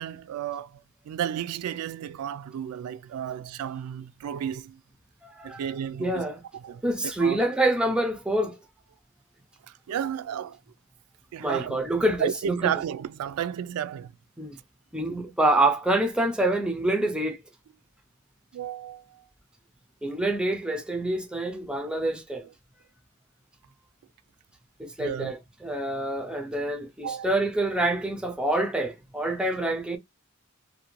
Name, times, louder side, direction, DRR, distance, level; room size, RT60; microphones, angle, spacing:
voice 1, 0.0-4.8 5.4-6.2 6.6-6.8 7.2-7.4 9.7-10.6 11.3-14.1 18.5-19.3 25.0-25.3 27.0-27.3, right 9 dB, 85° right, 0.3 m, -33 dB
voice 2, 5.2-5.7 6.0-6.4 6.8-8.6 11.4-12.7 14.4-14.6 14.9-17.4 20.0-22.5 24.8-30.0, right 1 dB, 5° right, 0.3 m, -26 dB
2.5 x 2.1 x 3.0 m
head